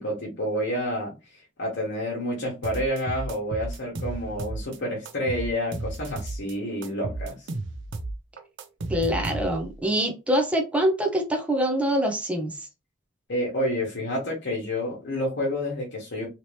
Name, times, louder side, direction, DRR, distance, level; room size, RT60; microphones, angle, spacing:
voice 1, 0.0-7.4 13.3-16.3, equal, 60° left, 1.1 m, -29 dB
sound 1, 2.6-4.8 5.1-6.5 6.8-9.8, right 2 dB, 65° right, 0.5 m, -33 dB
voice 2, 8.9-12.7, equal, 5° right, 0.5 m, -25 dB
2.9 x 2.8 x 3.1 m
head